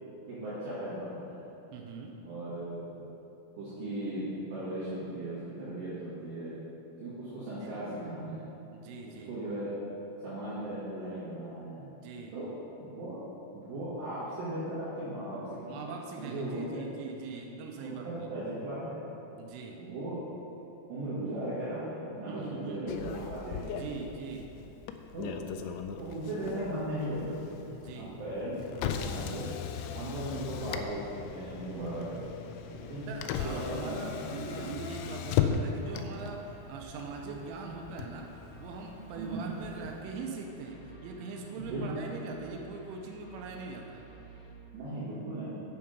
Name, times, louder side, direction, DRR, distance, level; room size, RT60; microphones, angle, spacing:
voice 1, 0.3-1.4 2.2-3.0 3.6-6.6 7.0-8.5 9.1-9.7 10.2-11.8 12.3-12.5 12.8-13.2 13.5-16.8 17.8-19.0 19.8-20.2 20.9-24.0 25.1-25.3 26.0-27.6 28.0-29.5 29.9-31.0 31.3-33.1 33.4-34.2 34.5-34.8 39.2-39.5 41.5-42.0 44.7-45.6, right 1 dB, 65° right, -13 dB, 4.0 m, -37 dB
voice 2, 1.7-2.2 7.6-7.7 8.7-9.3 12.0-12.4 15.7-18.3 19.4-19.8 22.2-23.1 23.6-24.5 27.7-28.2 33.1-38.3 38.6-44.0, right 4 dB, 90° right, 1 dB, 3.2 m, -42 dB
Motor vehicle (road), 22.9-40.0, left 7 dB, 90° left, 2.6 m, -37 dB
sound 1, 32.5-44.5, right 4 dB, 60° left, 2.4 m, -52 dB
8.7 x 7.4 x 5.2 m, 3.0 s
omnidirectional pair, 5.7 m